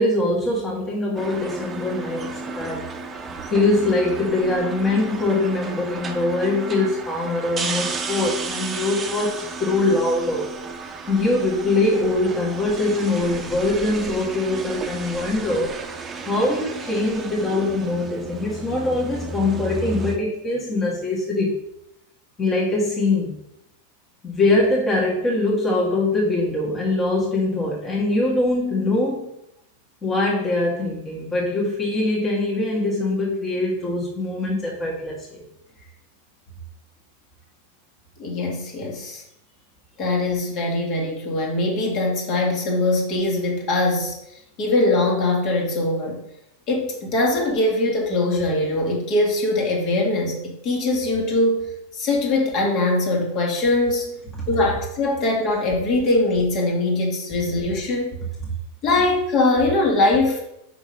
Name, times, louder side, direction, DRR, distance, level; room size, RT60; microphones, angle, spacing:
voice 1, 0.0-2.9 3.5-10.5 11.1-15.7 16.3-21.5 22.4-23.3 24.2-29.3 30.0-35.4, left 2 dB, 20° left, -4 dB, 1.8 m, -23 dB
sound 1, 1.2-20.2, right 3 dB, 20° right, 0.9 m, -33 dB
voice 2, 38.2-39.2 40.0-44.2 44.6-46.2 46.7-51.7 51.9-54.2 54.5-58.2 58.8-60.4, left 2 dB, 40° left, -1 dB, 2.2 m, -22 dB
6.0 x 5.5 x 5.2 m, 0.80 s
figure-of-eight pair, 90°, 0 cm